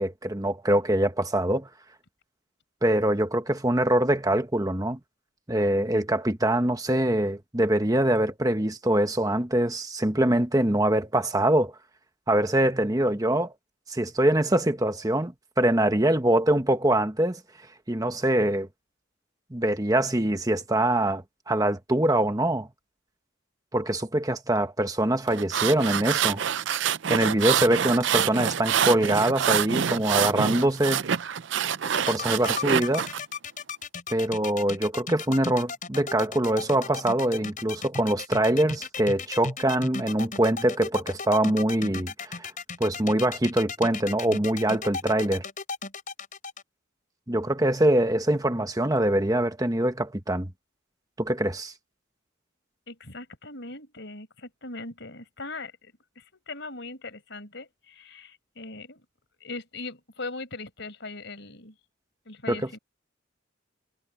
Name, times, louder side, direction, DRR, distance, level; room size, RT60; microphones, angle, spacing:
voice 1, 0.0-1.7 2.8-5.0 5.5-11.7 12.3-13.5 13.9-17.4 17.9-18.7 19.5-22.7 23.7-26.4 27.1-31.1 32.1-33.1 34.1-42.5 42.8-45.4 47.3-50.5 51.2-51.7 62.5-62.6, right 1 dB, 20° right, 1.2 m, -24 dB
sound 1, 25.3-33.2, right 8 dB, 65° right, 0.5 m, -26 dB
sound 2, 31.9-46.6, left 4 dB, 40° left, 5.8 m, -35 dB
voice 2, 52.9-59.1 59.4-61.8 62.3-62.8, left 3 dB, 60° left, 5.4 m, -40 dB
head